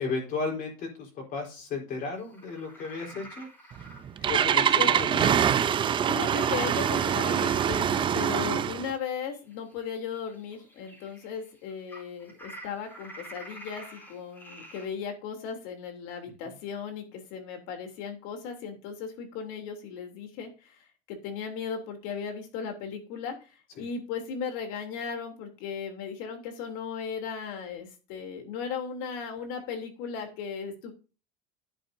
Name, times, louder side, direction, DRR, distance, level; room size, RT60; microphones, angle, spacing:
voice 1, 0.0-3.5 4.2-5.3 23.8-23.9, left 4 dB, 45° left, 0 dB, 4.4 m, -34 dB
sound 1, 2.2-5.5 5.7-14.9, right 1 dB, 10° left, 4.2 m, -48 dB
Engine starting, 3.7-8.9, right 8 dB, 25° right, 0.6 m, -24 dB
voice 2, 6.0-7.9 8.1-20.8 21.1-30.9, left 6 dB, 65° left, 5 dB, 3.3 m, -36 dB
10.5 x 8.7 x 2.8 m, 0.33 s
cardioid pair, 150°, 21 cm